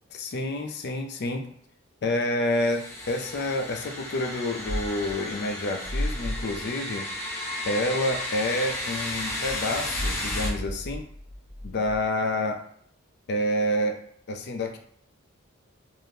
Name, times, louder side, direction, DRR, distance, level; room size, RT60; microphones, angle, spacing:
voice 1, 0.1-1.5 2.0-7.4 7.7-11.0 11.6-12.6 13.3-14.8, left 1 dB, 50° left, 4 dB, 0.4 m, -28 dB
sound 1, 2.5-10.5, left 1 dB, 15° left, 0.8 m, -34 dB
sound 2, 4.6-5.2 5.8-6.6 9.4-12.0, left 1 dB, 65° right, 1.1 m, -33 dB
3.4 x 2.6 x 2.6 m, 0.64 s
head